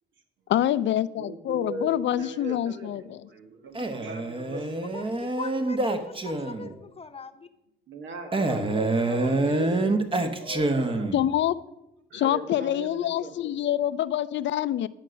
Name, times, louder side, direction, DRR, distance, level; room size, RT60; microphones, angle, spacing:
voice 1, 0.5-3.3 11.1-11.6 12.1-14.9, left 12 dB, 65° left, 0.5 m, -26 dB
voice 2, 1.2-5.0 6.6-6.8 7.9-10.1 10.4-11.1 12.1-13.5, right 2 dB, 70° right, 1.6 m, -38 dB
Male speech man speaking, 3.7-6.8 8.3-11.3, right 2 dB, 25° right, 1.1 m, -26 dB
voice 3, 4.9-7.5, left 4 dB, 30° left, 0.9 m, -40 dB
10.5 x 6.5 x 6.4 m
cardioid pair, 90°, 20 cm